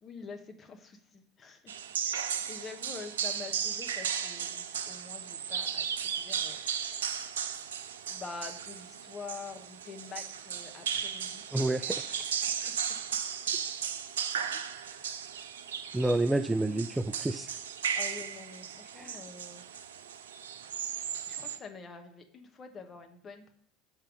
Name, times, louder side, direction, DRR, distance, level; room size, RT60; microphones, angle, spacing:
voice 1, 0.0-1.7 2.0-7.1 8.1-11.6 11.9-12.7 18.0-19.7 21.3-23.5, left 5 dB, 30° left, 5 dB, 1.1 m, -46 dB
sound 1, 1.7-21.6, right 8 dB, 70° right, 0.5 m, -36 dB
voice 2, 11.5-12.0 15.9-17.5 19.0-19.1, right 1 dB, 10° right, 10 dB, 0.3 m, -29 dB
6.6 x 5.8 x 5.2 m, 0.64 s
figure-of-eight pair, 65°, 0 cm